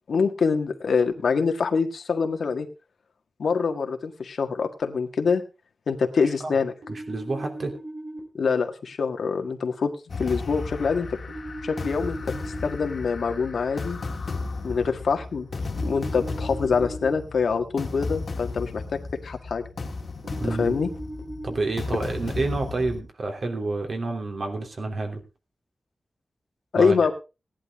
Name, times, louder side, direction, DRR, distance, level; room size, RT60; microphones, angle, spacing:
voice 1, 0.1-2.7 3.4-5.4 5.9-6.7 8.3-9.9 10.2-11.1 11.6-12.3 12.6-14.0 14.6-15.5 15.8-19.6 20.4-20.9 26.7-27.1, left 5 dB, 80° left, 6 dB, 1.6 m, -25 dB
sound 1, 6.8-8.2 11.3-12.7 15.8-17.2 20.2-21.6, right 1 dB, 80° right, 4.6 m, -38 dB
voice 2, 6.9-7.7 20.4-20.8 21.4-25.2 26.8-27.0, right 3 dB, 55° right, 3 dB, 2.9 m, -29 dB
sound 2, 10.1-23.0, left 3 dB, 55° left, 1.7 m, -34 dB
17.0 x 11.0 x 3.6 m, 0.29 s
wide cardioid pair, 150°, 0 cm